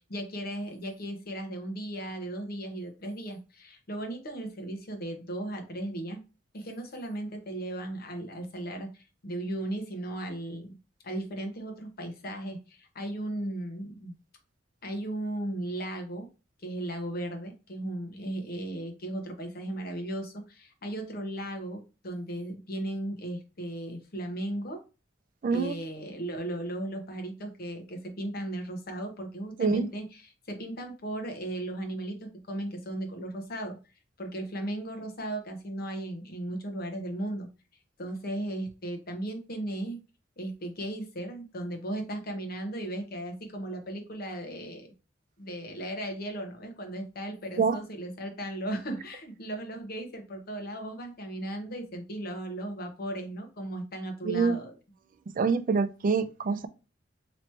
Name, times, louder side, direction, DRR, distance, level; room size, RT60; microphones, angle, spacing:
voice 1, 0.0-6.2 6.5-10.8 11.0-14.1 14.8-16.3 16.6-24.8 25.5-33.8 34.2-37.5 38.0-40.0 40.4-44.9 45.4-54.8, right 1 dB, 55° left, 1.0 m, -36 dB
voice 2, 25.4-25.7 29.6-29.9 47.6-47.8 54.2-54.6 55.4-56.7, right 5 dB, 45° right, 0.4 m, -25 dB
3.1 x 2.9 x 4.3 m
head